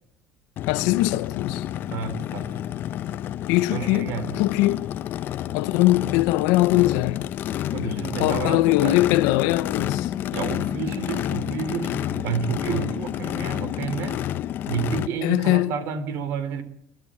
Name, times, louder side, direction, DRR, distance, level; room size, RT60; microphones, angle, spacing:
Race car auto racing / Idling / Accelerating revving vroom, 0.6-15.1, left 11 dB, 45° left, 0.9 m, -29 dB
voice 1, 0.7-1.6 3.5-4.9 5.5-7.3 7.6-10.1 15.2-15.7, left 18 dB, 80° left, 0.9 m, -22 dB
voice 2, 1.9-2.6 3.7-4.4 7.7-9.0 10.3-14.2 14.7-16.6, right 6 dB, 55° right, 3.7 m, -30 dB
29.5 x 13.0 x 8.8 m
cardioid pair, 150°, 5 cm